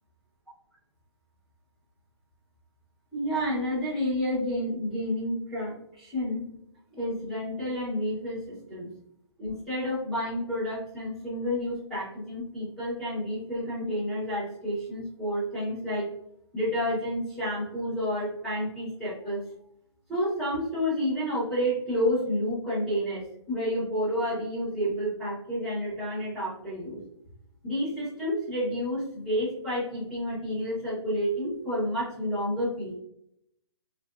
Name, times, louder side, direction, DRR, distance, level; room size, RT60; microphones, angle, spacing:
voice 1, 3.1-6.5 6.9-8.9 9.4-16.1 16.5-19.4 20.1-27.0 27.6-32.9, equal, ahead, -11 dB, 0.8 m, -30 dB
3.8 x 2.5 x 2.2 m, 0.74 s
hypercardioid pair, 180°, 15 cm